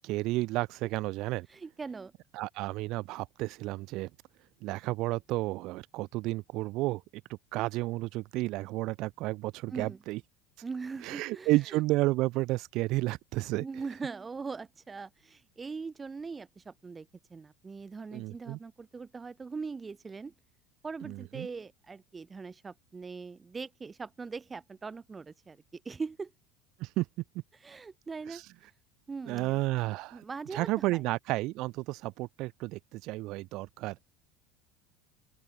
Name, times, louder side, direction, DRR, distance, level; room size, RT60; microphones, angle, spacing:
voice 1, 0.0-1.5 2.3-4.1 4.6-7.0 7.5-10.2 11.0-13.6 18.1-18.6 21.0-21.5 26.8-27.1 29.3-30.2 30.5-34.0, right 19 dB, 60° right, 0.6 m, -31 dB
voice 2, 1.5-2.1 9.7-10.0 10.6-11.8 13.5-20.3 20.8-26.3 27.6-28.4 29.1-29.6 30.1-31.0, right 4 dB, 25° right, 1.1 m, -41 dB
open air
hypercardioid pair, 85°, 0 cm